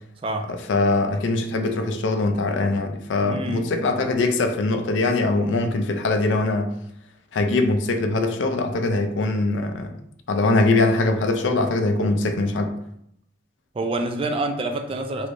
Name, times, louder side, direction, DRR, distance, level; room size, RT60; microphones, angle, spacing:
voice 1, 0.7-6.7 7.3-9.9 10.3-12.8, left 2 dB, 75° left, 6 dB, 0.4 m, -22 dB
voice 2, 3.2-3.7 13.7-15.3, right 2 dB, 30° right, 5 dB, 0.3 m, -27 dB
3.1 x 3.1 x 2.5 m, 0.75 s
head